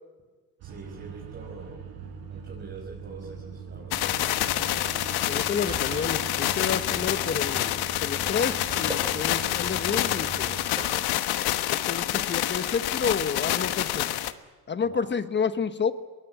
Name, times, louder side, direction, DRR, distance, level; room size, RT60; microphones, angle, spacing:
voice 1, 0.6-1.8 2.3-3.9 14.8-15.1, right 4 dB, 30° right, -3 dB, 6.1 m, -44 dB
sound 1, 0.6-10.6, right 6 dB, 75° right, 5.4 m, -41 dB
sound 2, 3.9-14.3, left 14 dB, 70° left, 1.2 m, -27 dB
voice 2, 5.3-10.6 11.7-14.1 14.7-15.9, left 6 dB, 30° left, 11 dB, 1.3 m, -30 dB
sound 3, 5.7-11.2, right 1 dB, 10° right, 7.4 m, -42 dB
22.0 x 18.0 x 9.5 m, 1.4 s
cardioid pair, 110°, 39 cm